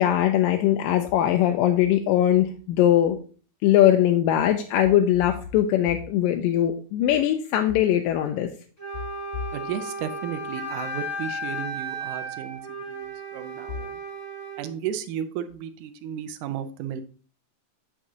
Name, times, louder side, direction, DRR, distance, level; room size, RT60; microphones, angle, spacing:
voice 1, 0.0-3.2 3.6-8.5, left 11 dB, 85° left, 5 dB, 2.2 m, -21 dB
Wind instrument woodwind instrument, 8.8-14.7, right 1 dB, 15° left, 0.5 m, -34 dB
voice 2, 9.5-14.0 14.6-17.0, right 9 dB, 80° right, 11 dB, 2.0 m, -34 dB
8.0 x 6.2 x 2.8 m, 0.41 s
omnidirectional pair, 3.8 m